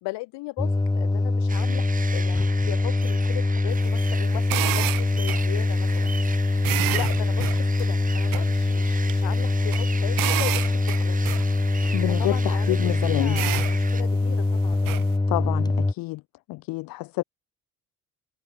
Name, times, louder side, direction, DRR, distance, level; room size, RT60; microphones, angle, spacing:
voice 1, 0.0-6.1 6.9-11.3 12.1-15.1, left 22 dB, 70° left, 1.8 m, -37 dB
sound 1, 0.6-15.9, left 2 dB, 10° left, 0.8 m, -23 dB
sound 2, 1.5-14.0, right 4 dB, 20° right, 1.1 m, -39 dB
sound 3, 3.7-15.1, right 18 dB, 50° right, 0.5 m, -33 dB
voice 2, 11.9-13.4 15.3-16.2 16.5-17.2, left 21 dB, 55° left, 0.5 m, -28 dB
hypercardioid pair, 55°, 43 cm